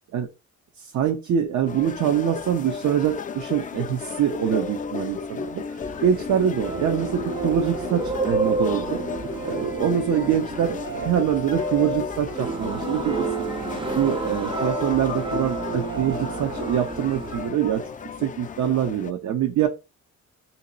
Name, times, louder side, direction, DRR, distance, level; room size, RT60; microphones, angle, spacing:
voice 1, 0.8-5.6 6.0-9.0 9.4-13.3 13.9-17.8 18.2-19.7, right 9 dB, 65° right, 3 dB, 0.7 m, -24 dB
sound 1, 1.7-19.1, left 6 dB, 30° left, 0.4 m, -34 dB
sound 2, 5.8-17.5, right 4 dB, 15° right, 0.6 m, -30 dB
2.9 x 2.8 x 3.9 m, 0.28 s
cardioid pair, 90°, 30 cm